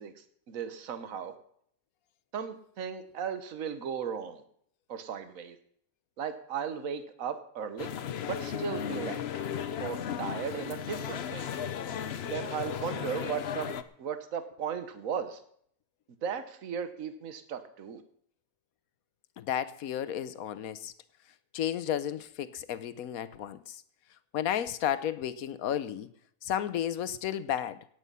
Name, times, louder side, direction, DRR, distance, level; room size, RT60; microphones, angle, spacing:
voice 1, 0.0-1.3 2.3-4.4 4.9-5.6 6.2-7.9 8.2-9.5 9.8-11.5 12.2-13.7 14.0-15.4 16.2-18.0, right 7 dB, 70° right, 1.5 m, -36 dB
sound 1, 7.8-13.8, left 8 dB, 55° left, 0.9 m, -35 dB
voice 2, 19.4-20.9 21.5-23.8 24.3-26.1 26.4-27.8, left 10 dB, 80° left, 1.2 m, -33 dB
17.5 x 8.7 x 5.6 m
omnidirectional pair, 1.5 m